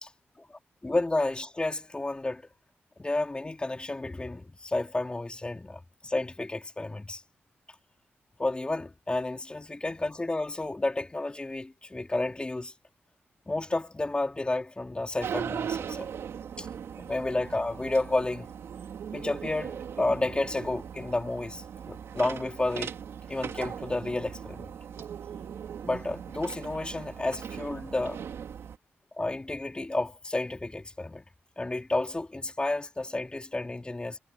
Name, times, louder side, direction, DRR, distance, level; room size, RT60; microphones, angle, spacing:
voice 1, 0.4-2.4 3.0-7.2 8.4-12.7 13.5-16.1 16.6-16.7 17.0-18.5 19.1-22.9 23.3-24.7 25.8-28.2 29.2-31.2 31.6-34.2, left 2 dB, 25° left, 4.0 m, -31 dB
sound 1, 15.2-28.8, right 8 dB, 85° right, 3.6 m, -39 dB
cardioid pair, 75°, 4 cm